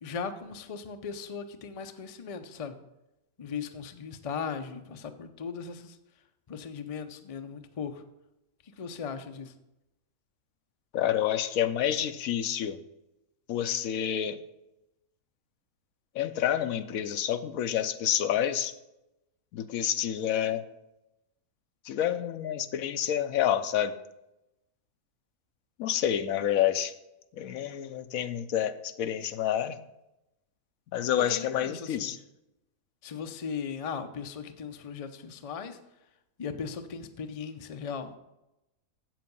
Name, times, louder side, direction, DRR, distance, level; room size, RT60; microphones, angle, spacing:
voice 1, 0.0-2.8 3.4-6.0 6.5-8.0 8.6-9.5 31.2-32.2 33.0-35.8 36.4-38.2, left 6 dB, 40° left, 8 dB, 0.5 m, -38 dB
voice 2, 10.9-12.8 13.5-14.4 16.1-18.7 19.5-20.6 21.8-24.0 25.8-26.9 27.3-29.8 30.9-32.2, left 10 dB, 75° left, 11 dB, 1.0 m, -28 dB
8.0 x 7.5 x 5.3 m, 0.91 s
omnidirectional pair, 1.5 m